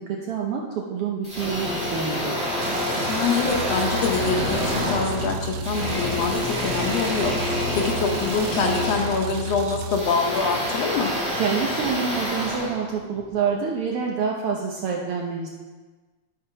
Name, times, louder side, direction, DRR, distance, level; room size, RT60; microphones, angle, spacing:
voice 1, 0.0-2.4 11.4-15.5, right 6 dB, 70° right, 0 dB, 1.4 m, -27 dB
sound 1, 1.2-13.4, left 1 dB, ahead, 2.6 m, -28 dB
sound 2, 2.6-10.0, right 4 dB, 90° right, 1.2 m, -33 dB
voice 2, 3.1-11.1, left 5 dB, 70° left, 2 dB, 1.7 m, -25 dB
11.0 x 5.3 x 5.6 m, 1.3 s
omnidirectional pair, 3.4 m